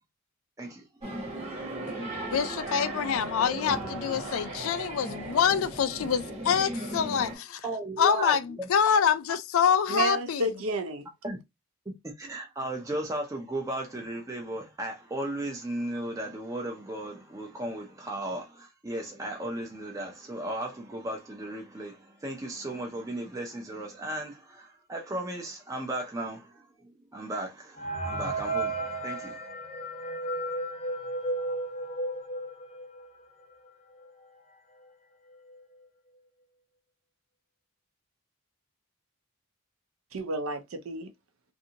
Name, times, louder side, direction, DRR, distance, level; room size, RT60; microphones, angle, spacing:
sound 1, 1.0-7.4, right 1 dB, 30° right, 1.0 m, -37 dB
voice 1, 2.3-7.6 8.0-10.5, left 7 dB, 75° left, 0.4 m, -26 dB
voice 2, 7.6-8.7 11.2-11.4 11.9-29.4, right 1 dB, 15° right, 0.4 m, -36 dB
voice 3, 9.9-11.1 40.1-41.1, right 1 dB, 80° right, 0.5 m, -31 dB
sound 2, 27.8-33.2 33.7-33.8 34.0-34.1 34.8-34.9 35.3-35.6, right 2 dB, 30° left, 0.6 m, -33 dB
2.6 x 2.5 x 2.7 m
head